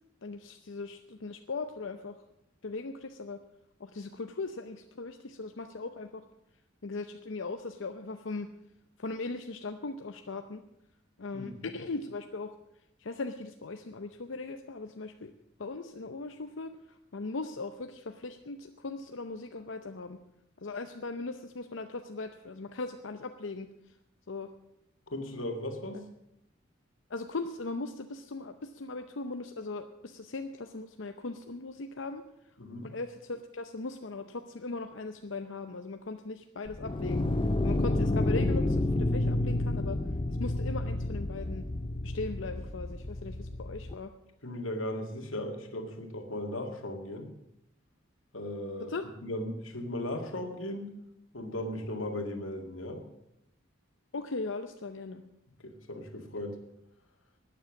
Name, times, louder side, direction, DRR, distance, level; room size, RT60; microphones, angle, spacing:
voice 1, 0.2-2.2 2.6-3.4 3.8-6.2 6.8-8.5 9.0-10.6 11.2-12.5 13.0-15.3 15.6-20.2 20.6-23.9 24.3-24.5 27.1-32.3 32.8-37.3 37.6-40.0 40.4-41.7 42.0-44.1 48.9-49.1 54.1-55.2, left 3 dB, 70° left, 7 dB, 0.7 m, -39 dB
voice 2, 25.1-26.1 32.6-32.9 44.4-47.3 48.3-48.9 49.2-50.9 51.3-53.0 55.6-56.6, left 1 dB, 85° left, 4 dB, 2.2 m, -37 dB
sound 1, 36.7-43.9, left 2 dB, 25° left, 0.6 m, -30 dB
12.5 x 9.3 x 7.4 m, 0.83 s
head